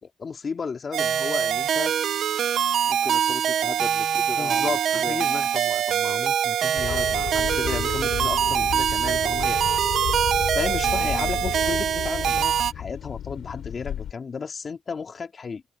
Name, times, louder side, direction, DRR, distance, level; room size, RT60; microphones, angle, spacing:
voice 1, 0.0-1.9 4.4-9.6 10.5-15.6, left 5 dB, 40° left, 3.6 m, -33 dB
sound 1, 0.9-12.7, right 9 dB, 65° right, 0.7 m, -24 dB
voice 2, 2.9-5.2 11.2-11.3, left 2 dB, 15° left, 4.2 m, -37 dB
sound 2, 6.8-14.1, left 10 dB, 70° left, 3.5 m, -32 dB
open air
cardioid pair, 90°, 0 cm